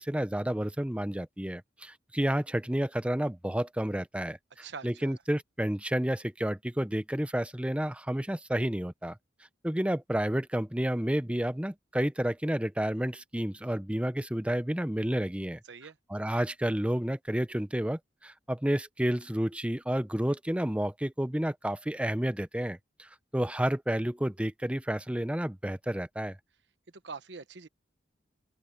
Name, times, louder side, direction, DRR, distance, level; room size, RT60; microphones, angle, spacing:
voice 1, 0.0-9.2 9.6-15.6 16.1-26.4, right 1 dB, 5° right, 0.7 m, -30 dB
voice 2, 4.6-5.2 15.7-16.0 27.0-27.7, right 5 dB, 70° right, 1.0 m, -43 dB
open air
head